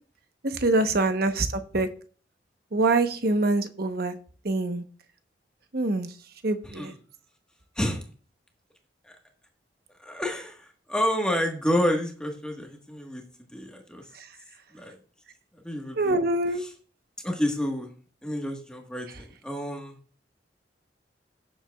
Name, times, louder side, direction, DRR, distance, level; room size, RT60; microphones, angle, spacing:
voice 1, 0.4-1.9 2.7-4.1 4.4-4.8 5.7-6.1 6.4-6.9 14.1-14.3 16.0-16.6, right 2 dB, 60° right, 8 dB, 1.0 m, -25 dB
voice 2, 6.6-6.9 7.8-8.0 9.0-9.1 10.0-13.2 13.5-14.1 14.7-14.9 15.6-16.2 16.6-16.7 17.2-17.9 18.2-20.0, equal, 5° left, 1 dB, 1.4 m, -29 dB
17.5 x 7.4 x 2.4 m, 0.41 s
head